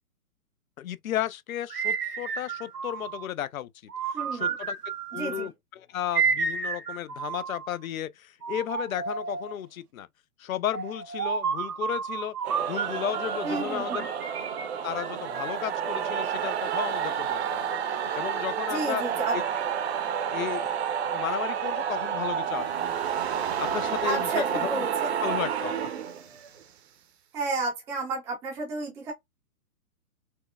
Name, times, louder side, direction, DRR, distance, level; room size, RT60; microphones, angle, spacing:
voice 1, 0.8-3.7 4.3-4.8 5.1-10.1 10.4-12.3 12.7-14.1 14.8-17.7 18.2-19.0 19.3-19.4 20.3-20.7 21.0-23.0 23.6-24.7 25.2-25.9, left 11 dB, 65° left, 0.5 m, -34 dB
sound 1, 1.7-3.3 3.9-5.5 6.1-7.8 8.4-9.6 10.7-13.5 13.9-15.7, right 6 dB, 90° right, 0.8 m, -31 dB
voice 2, 4.1-4.5 5.1-5.5 13.4-14.1 18.7-19.4 24.0-25.4 27.3-29.1, right 3 dB, 5° right, 0.5 m, -32 dB
sound 2, 12.4-26.6, right 8 dB, 45° right, 0.7 m, -30 dB
4.3 x 2.1 x 2.3 m
figure-of-eight pair, 125°, 45 cm